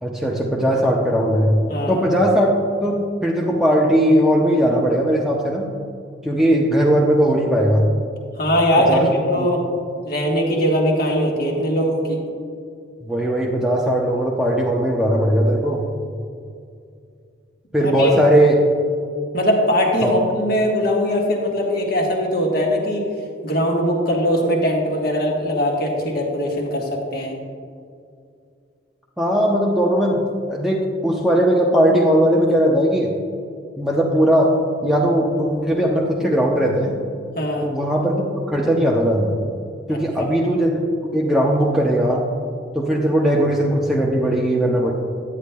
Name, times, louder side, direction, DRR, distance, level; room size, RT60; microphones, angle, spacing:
voice 1, 0.0-1.5 1.9-2.5 2.8-5.7 6.2-7.9 8.9-9.1 9.3-9.5 13.0-15.8 17.7-18.6 20.0-20.1 29.2-30.2 30.5-33.1 33.8-34.5 34.8-36.9 37.6-39.3 39.9-40.8 41.1-42.2 42.7-44.9, equal, ahead, -3 dB, 0.5 m, -18 dB
voice 2, 1.7-2.0 8.4-9.0 9.3-9.6 10.1-12.2 17.8-18.1 19.3-23.0 23.4-27.3 37.4-37.7 39.9-40.3, equal, 50° left, 0 dB, 1.2 m, -20 dB
9.9 x 9.2 x 2.2 m, 2.4 s
head